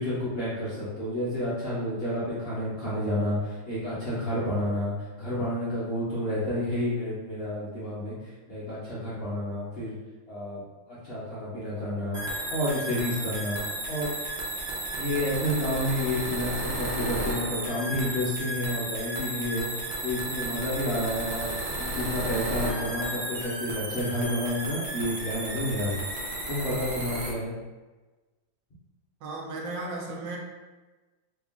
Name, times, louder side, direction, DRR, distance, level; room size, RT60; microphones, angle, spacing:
voice 1, 0.0-9.9 10.3-12.2 12.5-13.6 13.9-14.1 15.0-26.0 26.5-27.5, left 1 dB, 45° left, -10 dB, 0.8 m, -30 dB
sound 1, 12.1-27.3, right 1 dB, 60° right, 0.7 m, -33 dB
voice 2, 29.2-30.4, right 2 dB, 80° right, -1 dB, 1.3 m, -35 dB
3.5 x 2.4 x 3.5 m, 1.2 s
omnidirectional pair, 2.0 m